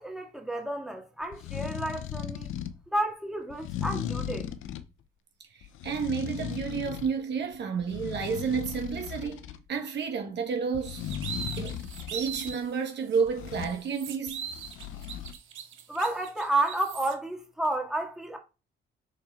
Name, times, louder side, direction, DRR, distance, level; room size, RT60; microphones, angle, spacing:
voice 1, 0.0-2.5 2.9-4.5 15.9-18.4, right 2 dB, ahead, 1.9 m, -31 dB
sound 1, 1.2-2.8 3.5-4.9 5.6-7.2 7.5-9.6 10.7-12.6 13.3-13.8 14.3-15.3, left 10 dB, 85° left, 0.7 m, -37 dB
voice 2, 5.5-14.5, right 6 dB, 60° right, 1.4 m, -31 dB
sound 2, 10.8-12.7 13.1-13.2 13.6-17.1, right 8 dB, 75° right, 1.1 m, -40 dB
6.1 x 4.3 x 3.6 m
cardioid pair, 90°, 20 cm